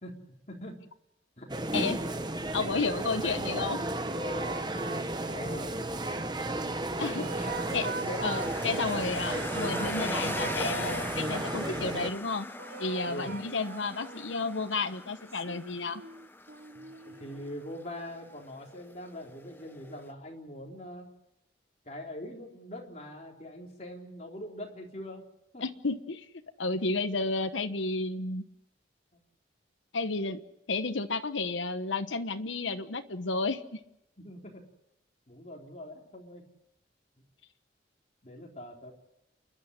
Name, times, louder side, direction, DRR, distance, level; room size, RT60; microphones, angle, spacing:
voice 1, 0.0-0.8 1.4-1.5 5.3-5.7 7.0-8.5 9.3-9.5 13.1-13.3 16.7-21.1 21.9-25.2 25.5-25.6 29.1-29.2 34.2-34.6 35.3-36.4 38.2-38.9, left 1 dB, 35° left, 0 dB, 3.7 m, -43 dB
sound 1, 1.5-12.1, right 1 dB, 25° right, 1.0 m, -33 dB
voice 2, 2.5-3.8 7.0-7.3 7.7-7.9 8.2-12.5 12.8-16.0 25.6-26.3 26.6-28.4 29.9-30.4 30.7-33.8, left 3 dB, 90° left, 10 dB, 1.1 m, -32 dB
sound 2, 3.7-6.0 6.6-9.1 9.5-11.4 12.6-14.5 15.3-17.6, right 4 dB, 50° right, 0.7 m, -43 dB
sound 3, 7.0-20.1, left 2 dB, 10° left, 0.8 m, -41 dB
28.5 x 11.5 x 9.8 m, 0.86 s
head